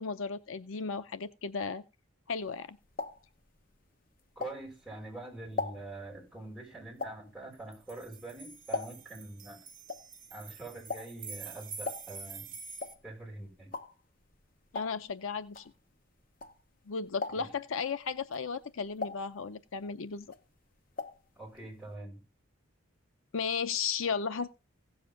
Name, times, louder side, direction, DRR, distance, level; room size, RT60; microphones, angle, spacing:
voice 1, 0.0-1.8 2.3-2.8 14.7-15.6 16.9-20.3 23.3-24.5, left 5 dB, 70° left, 0.6 m, -35 dB
sound 1, 2.4-5.0 5.3-9.3 9.5-16.8 17.1-17.7 18.2-19.9 20.2-21.3 21.5-21.6 21.9-22.0, left 3 dB, 40° left, 0.8 m, -41 dB
voice 2, 4.4-9.6 10.3-12.5 13.0-13.7 17.3-17.5 21.4-22.2, right 2 dB, ahead, 5.9 m, -44 dB
sound 2, 7.5-12.9, right 4 dB, 40° right, 1.4 m, -47 dB
16.0 x 7.3 x 3.8 m
head